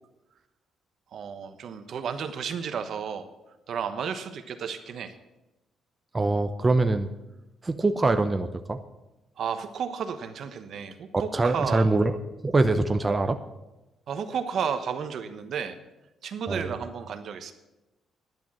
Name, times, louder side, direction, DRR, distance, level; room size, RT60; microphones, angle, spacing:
voice 1, 1.1-3.3 3.7-5.1 9.4-11.9 14.1-15.8 16.2-17.5, right 7 dB, 65° right, 9 dB, 1.1 m, -32 dB
voice 2, 6.1-7.1 7.6-8.8 11.3-12.1 12.4-13.4 16.5-16.7, right 2 dB, 25° right, 8 dB, 0.7 m, -23 dB
10.5 x 9.2 x 7.5 m, 1.0 s
cardioid pair, 90°, 0 cm